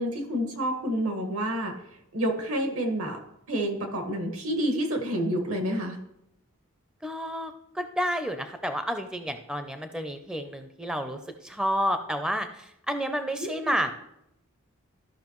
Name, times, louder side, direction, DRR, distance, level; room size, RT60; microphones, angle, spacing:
voice 1, 0.0-1.7 2.1-6.0 13.4-13.7, equal, 80° right, 3 dB, 1.6 m, -29 dB
voice 2, 7.0-13.9, equal, 5° right, 7 dB, 0.4 m, -30 dB
14.0 x 5.6 x 3.0 m, 0.80 s
head